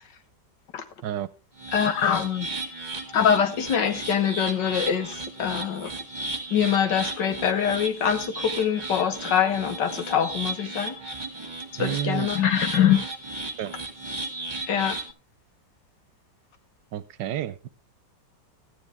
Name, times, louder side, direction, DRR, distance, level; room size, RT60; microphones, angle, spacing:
sound 1, 1.6-15.1, right 2 dB, 25° right, 2.0 m, -35 dB
voice 1, 1.7-2.5 3.1-5.9 6.5-10.9 11.8-13.0 14.7-15.0, left 8 dB, 70° left, 9 dB, 1.8 m, -24 dB
voice 2, 11.8-12.3 13.6-13.7 16.9-17.7, right 11 dB, 75° right, 16 dB, 1.4 m, -30 dB
14.0 x 9.6 x 3.4 m, 0.29 s
omnidirectional pair, 2.0 m